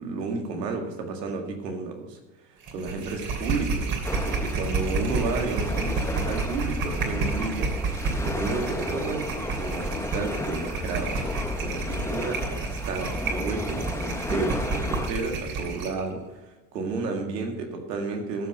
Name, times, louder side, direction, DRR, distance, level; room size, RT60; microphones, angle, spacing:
voice 1, 0.0-2.2 2.7-18.5, right 4 dB, 90° right, 3 dB, 2.1 m, -32 dB
sound 1, 2.6-16.0, right 4 dB, 45° right, 2.9 m, -30 dB
sound 2, 4.0-15.1, left 2 dB, 5° left, 0.7 m, -33 dB
13.5 x 6.1 x 6.6 m, 1.1 s
hypercardioid pair, 95°, 49 cm